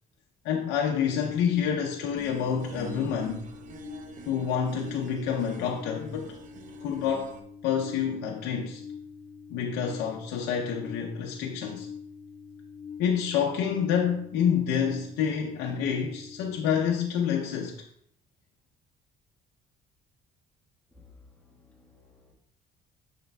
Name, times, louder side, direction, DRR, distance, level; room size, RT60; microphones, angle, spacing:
voice 1, 0.4-3.4 4.3-6.3 6.8-7.3 7.6-8.8 9.5-11.9 13.0-17.8, left 7 dB, 90° left, 0.7 m, -28 dB
sound 1, 1.0-16.9, left 6 dB, 25° left, 1.4 m, -45 dB
sound 2, 2.2-7.4, right 5 dB, 50° right, 0.7 m, -47 dB
voice 2, 20.9-22.3, left 4 dB, 5° left, 1.4 m, -57 dB
6.8 x 6.6 x 2.3 m
cardioid pair, 110°, 17 cm